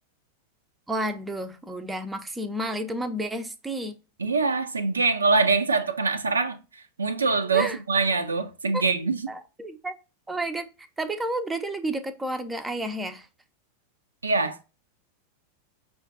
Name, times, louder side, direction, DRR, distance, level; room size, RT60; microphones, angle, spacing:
voice 1, 0.9-4.0 7.5-7.8 8.7-8.8 9.3-9.9 10.3-13.3, right 1 dB, 10° right, 0.5 m, -31 dB
voice 2, 4.2-9.2 14.2-14.7, right 4 dB, 75° right, 0.4 m, -24 dB
5.6 x 2.3 x 3.6 m
figure-of-eight pair, 90°, 0 cm